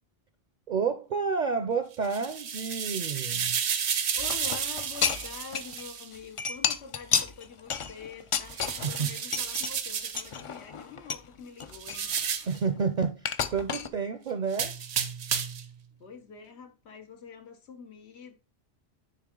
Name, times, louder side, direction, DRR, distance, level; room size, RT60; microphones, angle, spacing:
voice 1, 0.7-3.6 8.8-9.1 12.5-13.3 13.5-14.7, right 5 dB, 55° right, 0.6 m, -30 dB
sound 1, 1.9-6.1 8.5-10.3 11.7-12.6 14.5-15.7, right 7 dB, 85° right, 1.0 m, -32 dB
voice 2, 4.1-12.1 15.6-15.7 16.0-18.4, left 5 dB, 85° left, 1.2 m, -46 dB
sound 2, 4.2-5.8 6.1-9.0 9.3-9.7 10.1-11.3 11.6-12.8 13.2-13.9, left 6 dB, 55° left, 0.3 m, -31 dB
9.6 x 3.5 x 3.7 m
omnidirectional pair, 1.1 m